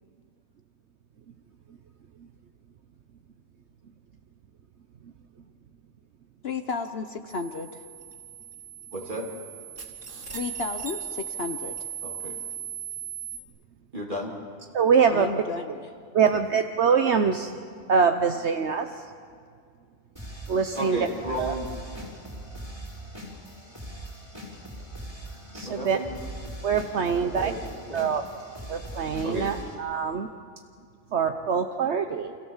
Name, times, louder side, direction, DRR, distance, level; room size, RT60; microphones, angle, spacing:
voice 1, 6.4-7.7 10.3-11.8 15.1-15.9, left 4 dB, 55° left, 7 dB, 1.2 m, -33 dB
sound 1, 7.3-13.4, right 8 dB, 85° right, 2.9 m, -38 dB
voice 2, 8.9-9.3 12.0-12.4 13.9-14.3 16.3-16.4 20.8-21.7 25.6-26.2 27.1-27.6 27.9-28.1 29.2-29.5, equal, 40° right, -2 dB, 3.1 m, -33 dB
voice 3, 14.7-15.3 16.1-17.6 17.9-18.9 20.5-21.1 21.4-21.5 25.5-26.0 26.6-27.5 27.9-28.2 28.7-30.3 31.1-32.4, right 6 dB, 65° right, 7 dB, 1.2 m, -24 dB
sound 2, 20.2-29.8, right 1 dB, 25° right, 5.2 m, -40 dB
29.5 x 25.5 x 7.3 m, 2.2 s
omnidirectional pair, 1.3 m